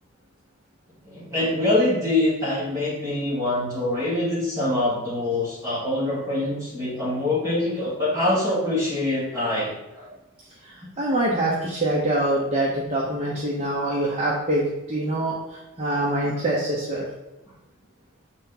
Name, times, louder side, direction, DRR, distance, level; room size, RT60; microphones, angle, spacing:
voice 1, 1.1-10.1, left 2 dB, 15° right, -8 dB, 1.7 m, -24 dB
voice 2, 10.6-17.1, right 1 dB, 30° right, -5 dB, 0.9 m, -25 dB
6.9 x 4.1 x 3.9 m, 1.0 s
head